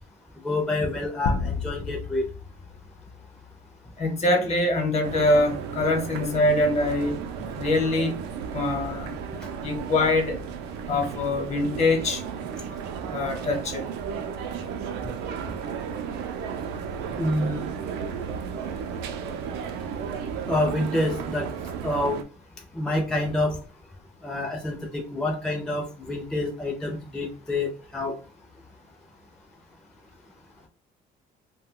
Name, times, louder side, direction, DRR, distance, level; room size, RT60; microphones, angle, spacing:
voice 1, 0.4-2.3 17.2-17.7 20.5-21.5 21.8-22.2 22.7-23.6 24.2-28.2, left 1 dB, 5° left, 0.4 m, -27 dB
sound 1, 1.3-3.8, left 4 dB, 80° left, 0.4 m, -32 dB
voice 2, 4.0-7.2 7.6-8.1 8.5-9.2 9.6-10.4 10.9-12.2 13.1-13.8, left 2 dB, 40° left, 0.8 m, -24 dB
sound 2, 5.0-22.2, right 7 dB, 90° right, 0.4 m, -34 dB
2.2 x 2.2 x 3.6 m
cardioid pair, 110°, 17 cm